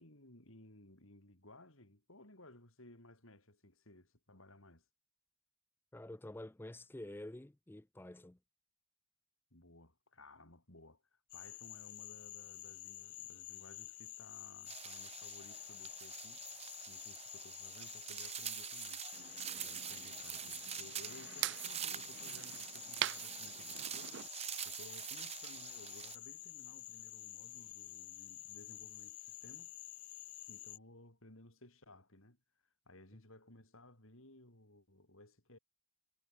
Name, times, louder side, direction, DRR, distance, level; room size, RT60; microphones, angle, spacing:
voice 1, 0.0-4.8 9.5-16.4 16.9-19.0 19.5-24.2 24.6-29.7 30.5-32.4 32.9-35.6, left 1 dB, 65° left, 5.7 m, -59 dB
voice 2, 5.9-8.4, left 1 dB, 10° left, 0.4 m, -48 dB
Frog, 11.3-30.8, left 17 dB, 85° left, 0.8 m, -50 dB
sound 1, 14.7-26.2, right 9 dB, 30° right, 1.5 m, -46 dB
sound 2, 19.1-24.3, right 13 dB, 55° right, 0.4 m, -44 dB
head